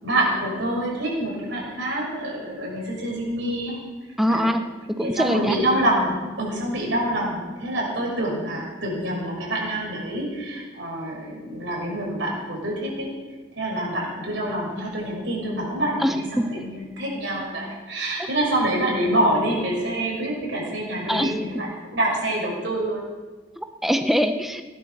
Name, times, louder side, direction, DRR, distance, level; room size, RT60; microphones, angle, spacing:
voice 1, 0.0-3.8 4.3-4.5 5.0-13.1 13.5-23.0, right 1 dB, 80° right, -2 dB, 6.6 m, -26 dB
voice 2, 4.2-4.6 4.9-5.6 16.0-16.5 21.1-21.3 23.6-24.6, equal, ahead, 7 dB, 0.6 m, -23 dB
17.5 x 10.5 x 6.6 m, 1.3 s
head